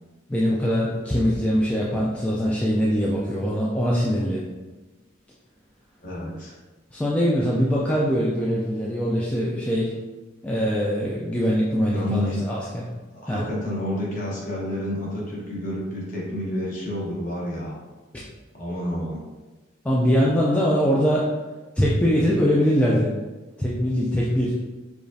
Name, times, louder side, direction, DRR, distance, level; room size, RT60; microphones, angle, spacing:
voice 1, 0.3-4.4 6.9-9.9 10.4-12.9 13.3-13.4 19.8-21.3 21.8-23.1 23.6-24.6, equal, 5° left, -6 dB, 0.3 m, -22 dB
voice 2, 6.0-6.6 11.9-12.4 13.2-17.8 18.5-19.2, left 1 dB, 40° left, -5 dB, 1.0 m, -30 dB
4.8 x 2.4 x 2.6 m, 1.2 s
head